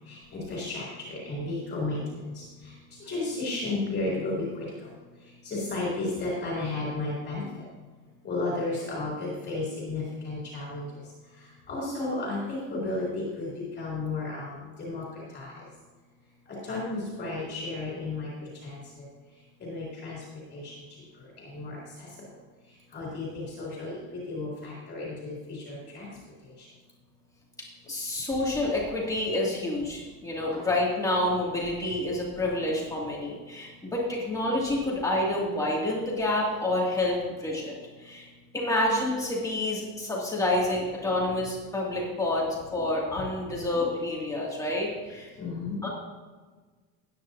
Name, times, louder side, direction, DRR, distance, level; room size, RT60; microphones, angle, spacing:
voice 1, 0.1-2.0 2.3-2.4 3.1-4.4 5.4-7.4 8.2-10.9 11.7-13.5 13.8-14.5 14.8-15.0 15.3-15.5 16.7-18.3 18.6-18.8 19.6-20.2 20.5-20.7 21.5-21.8 22.9-24.0 24.3-26.1 45.4-45.8, left 2 dB, 25° left, -5 dB, 3.1 m, -32 dB
voice 2, 27.8-45.3 45.8-45.9, left 1 dB, 10° left, -4 dB, 2.3 m, -28 dB
18.5 x 9.5 x 2.7 m, 1.4 s
cardioid pair, 170°, 42 cm